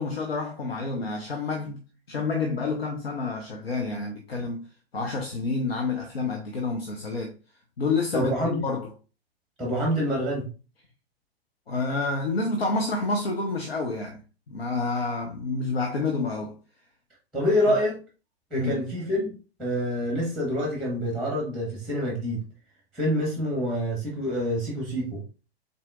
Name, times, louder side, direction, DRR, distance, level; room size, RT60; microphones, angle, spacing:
voice 1, 0.0-4.7 4.9-7.3 7.8-8.9 11.7-14.2 14.5-16.5 18.5-18.8, left 3 dB, 70° left, 0.9 m, -29 dB
voice 2, 8.1-8.6 9.6-10.5 17.3-18.0 18.5-22.4 22.9-25.2, equal, ahead, 1.3 m, -27 dB
4.3 x 4.0 x 2.4 m
figure-of-eight pair, 110°, 31 cm